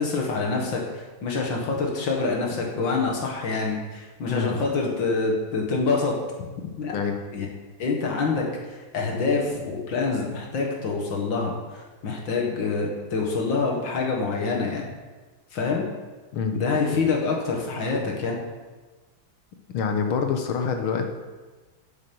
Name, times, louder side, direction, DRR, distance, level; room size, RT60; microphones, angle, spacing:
voice 1, 0.0-6.1 6.8-6.9 7.3-7.5 7.8-8.5 8.9-14.9 15.5-15.9 16.5-18.4, left 4 dB, 65° left, 0 dB, 2.3 m, -26 dB
voice 2, 19.7-21.0, left 6 dB, 85° left, 5 dB, 1.9 m, -26 dB
9.1 x 6.3 x 6.9 m, 1.3 s
omnidirectional pair, 2.2 m